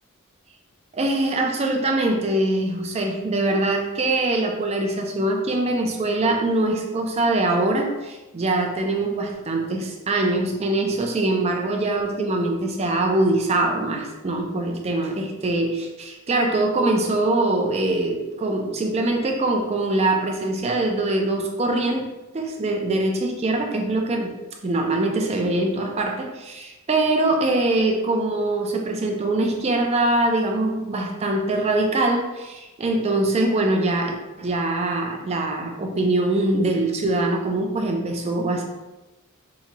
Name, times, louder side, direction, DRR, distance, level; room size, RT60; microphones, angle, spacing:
voice 1, 0.9-22.1 22.3-24.3 24.6-38.6, right 2 dB, 30° right, 3 dB, 0.4 m, -23 dB
2.9 x 2.2 x 3.7 m, 1.1 s
head